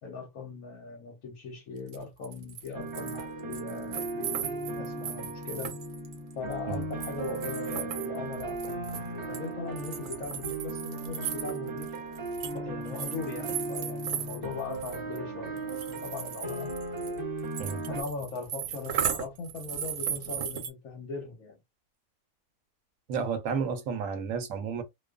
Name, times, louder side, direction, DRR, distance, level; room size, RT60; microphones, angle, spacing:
voice 1, 0.0-5.8 6.3-12.0 12.5-16.7 17.9-21.6, left 4 dB, 70° left, 1.2 m, -39 dB
sound 1, 1.9-2.0 2.2-3.2 3.5-9.4 9.8-12.6 12.9-15.2 15.6-20.7, right 9 dB, 90° right, 1.1 m, -36 dB
sound 2, 2.7-18.0, right 3 dB, 45° right, 1.0 m, -37 dB
voice 2, 23.1-24.8, right 6 dB, 70° right, 0.9 m, -31 dB
2.5 x 2.3 x 2.2 m
omnidirectional pair, 1.5 m